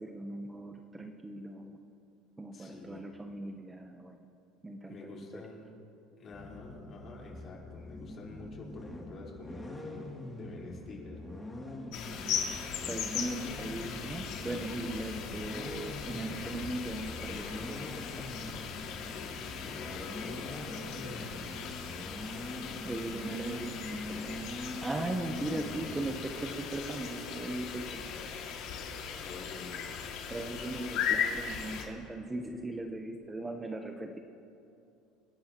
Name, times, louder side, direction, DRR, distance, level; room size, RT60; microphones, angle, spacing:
voice 1, 0.0-1.8 2.4-4.2 4.6-5.4 12.9-18.2 22.8-23.7 24.1-24.5 24.8-28.5 30.3-34.2, right 2 dB, 10° right, 4 dB, 0.8 m, -39 dB
voice 2, 2.5-3.1 4.9-5.8 6.2-11.2 19.0-21.8 29.1-29.9, left 3 dB, 35° left, -3 dB, 4.2 m, -48 dB
sound 1, 6.3-26.2, left 1 dB, 5° left, 2.6 m, -43 dB
sound 2, 11.9-31.8, left 7 dB, 65° left, 2.2 m, -38 dB
28.0 x 11.5 x 3.0 m, 2.6 s
supercardioid pair, 120°, 0 cm